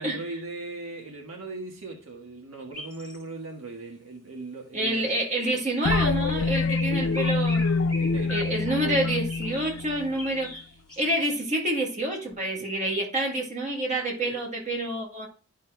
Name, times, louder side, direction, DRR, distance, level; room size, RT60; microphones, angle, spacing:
voice 1, 0.0-5.1 8.0-8.4 12.6-12.7 14.2-14.4, right 2 dB, 80° right, 1.5 m, -39 dB
sound 1, 2.7-3.2 5.9-6.0 6.7-8.6 9.3-9.8 10.2-11.4, left 1 dB, 5° left, 2.2 m, -41 dB
voice 2, 4.7-7.8 8.3-10.5 11.0-15.3, right 1 dB, 35° right, 2.0 m, -28 dB
sound 2, 5.9-10.5, left 4 dB, 70° left, 0.4 m, -26 dB
11.5 x 5.6 x 2.2 m
head